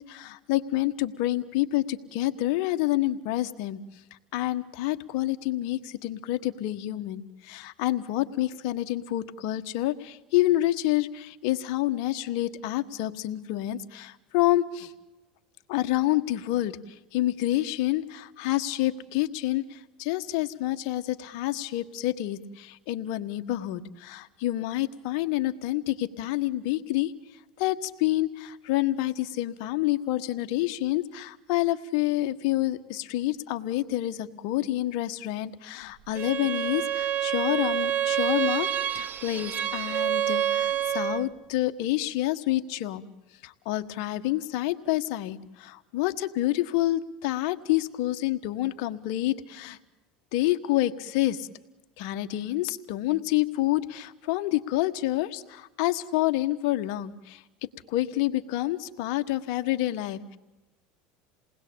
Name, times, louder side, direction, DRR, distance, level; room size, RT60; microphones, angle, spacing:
voice 1, 0.0-3.8 4.3-14.9 15.7-27.1 27.6-43.0 43.4-49.8 50.3-51.5 52.0-57.4 57.9-60.4, left 15 dB, 70° left, 9 dB, 1.5 m, -28 dB
Bowed string instrument, 36.1-41.3, right 10 dB, 45° right, 1.3 m, -27 dB
28.5 x 20.0 x 8.7 m, 1.1 s
supercardioid pair, 110°, 4 cm